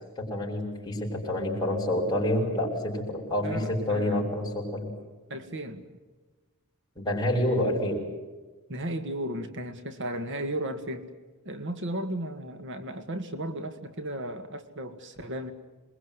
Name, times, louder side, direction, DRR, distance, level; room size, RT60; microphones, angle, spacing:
voice 1, 0.2-4.9 7.0-8.0, left 1 dB, 20° left, -1 dB, 7.0 m, -28 dB
voice 2, 3.4-4.2 5.3-5.9 8.7-11.1 11.5-15.5, right 1 dB, 55° right, 8 dB, 1.9 m, -35 dB
27.5 x 22.0 x 9.7 m, 1.3 s
head